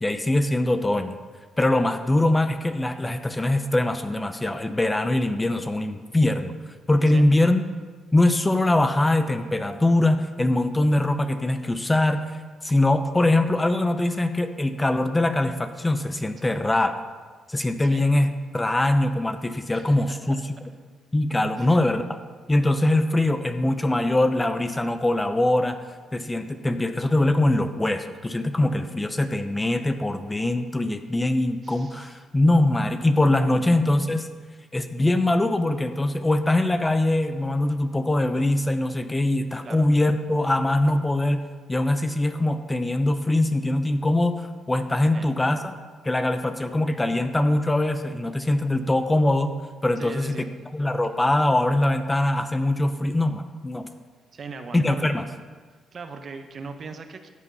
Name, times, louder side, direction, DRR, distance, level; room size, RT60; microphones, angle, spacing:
voice 1, 0.0-1.2 1.6-6.5 6.9-7.6 8.1-16.9 17.5-20.4 21.1-22.2 22.5-25.8 26.1-34.3 34.7-41.4 41.7-45.8 46.0-49.5 49.8-50.4 50.7-53.9 54.7-55.2, left 1 dB, 15° left, 9 dB, 0.8 m, -22 dB
voice 2, 19.7-20.2 21.6-21.7 31.6-32.2 33.3-33.7 39.6-39.9 45.1-45.3 50.0-50.5 54.3-55.2 55.9-57.3, right 4 dB, 45° right, 7 dB, 1.2 m, -40 dB
14.0 x 8.1 x 5.6 m, 1.4 s
cardioid pair, 90°, 0 cm